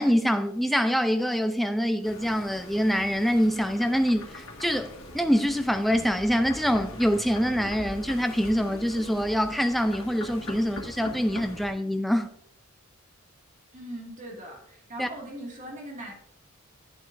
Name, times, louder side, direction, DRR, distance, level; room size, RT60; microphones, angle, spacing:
voice 1, 0.0-12.3 15.0-15.1, equal, ahead, 0.4 m, -25 dB
sound 1, 2.0-11.7, left 1 dB, 65° left, 1.6 m, -42 dB
voice 2, 13.7-16.1, right 1 dB, 35° right, 2.2 m, -40 dB
10.5 x 7.7 x 2.6 m
head